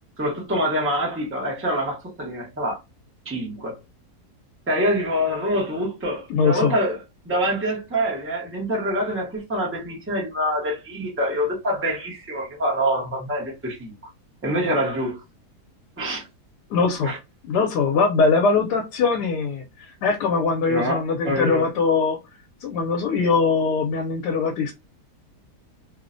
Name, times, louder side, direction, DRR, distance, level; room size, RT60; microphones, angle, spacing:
voice 1, 0.2-2.8 3.2-3.8 4.7-7.0 7.2-13.9 14.4-15.2 16.0-16.3 17.0-17.2 20.7-21.6, equal, 15° right, 0.5 m, -25 dB
voice 2, 6.3-6.8 16.7-17.1 17.4-22.2 22.6-24.7, left 4 dB, 85° left, 1.2 m, -21 dB
3.0 x 2.1 x 2.5 m
omnidirectional pair, 1.7 m